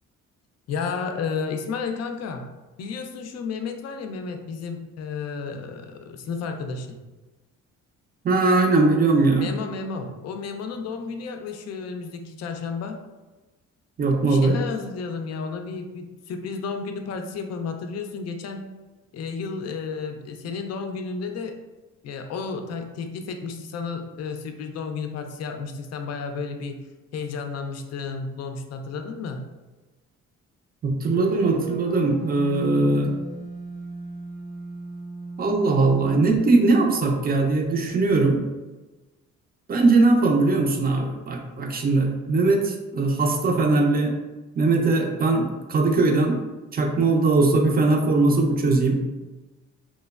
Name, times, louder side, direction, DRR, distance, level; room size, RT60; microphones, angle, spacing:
voice 1, 0.7-2.5 2.8-7.0 9.3-13.0 14.1-18.7 19.1-21.5 22.0-26.8 27.1-29.4, left 5 dB, 55° left, 5 dB, 0.4 m, -32 dB
voice 2, 8.2-9.5 14.0-14.6 30.8-33.1 35.4-38.4 39.7-44.1 44.5-46.4 46.7-49.0, right 3 dB, 30° right, 3 dB, 0.5 m, -20 dB
sound 1, 31.1-37.2, right 3 dB, 80° right, 1.2 m, -38 dB
3.0 x 2.1 x 2.3 m, 1.2 s
cardioid pair, 90°, 30 cm